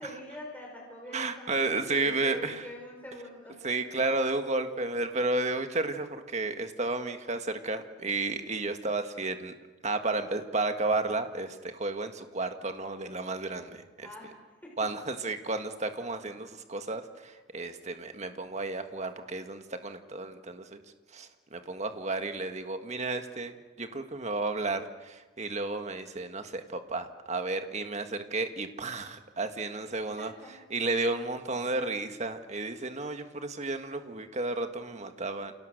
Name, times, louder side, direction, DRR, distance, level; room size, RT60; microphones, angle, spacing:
voice 1, 0.0-3.5 14.0-14.4 14.8-14.9 30.2-30.5, left 1 dB, 10° left, -2 dB, 6.2 m, -44 dB
voice 2, 1.1-2.7 3.6-9.5 9.8-14.1 14.8-20.8 21.1-30.3 30.7-35.5, right 3 dB, 35° right, 7 dB, 1.7 m, -32 dB
29.0 x 28.5 x 6.6 m, 1.3 s
head